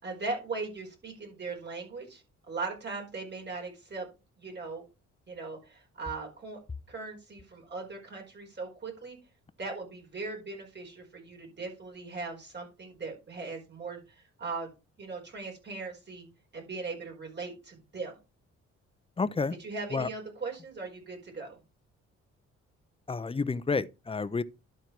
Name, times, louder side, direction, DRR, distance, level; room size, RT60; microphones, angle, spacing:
voice 1, 0.0-4.1 4.4-4.8 5.3-6.6 6.9-9.2 9.6-14.7 15.0-16.3 16.5-18.2 19.6-21.6, right 3 dB, 35° right, 4.7 m, -39 dB
voice 2, 19.2-19.5 19.9-20.1 23.1-24.4, left 4 dB, 20° left, 0.7 m, -30 dB
12.0 x 4.5 x 4.6 m
cardioid pair, 75°, 29 cm